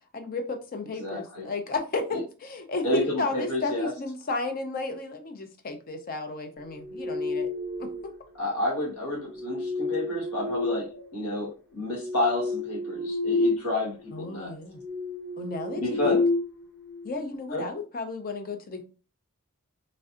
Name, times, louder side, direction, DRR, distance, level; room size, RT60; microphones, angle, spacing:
voice 1, 0.1-7.5 7.8-8.1 14.1-14.8 15.4-16.2 17.0-18.8, left 3 dB, 40° left, 0.5 m, -33 dB
voice 2, 1.0-1.5 2.1-2.2 2.8-3.9 8.4-10.9 11.1-14.5 15.7-16.2 17.5-17.6, left 1 dB, 80° left, 1.4 m, -30 dB
sound 1, 6.8-8.3 9.3-11.4 11.8-13.7 14.0-14.2 14.7-17.1, left 3 dB, 5° left, 0.8 m, -30 dB
3.2 x 2.6 x 2.4 m
head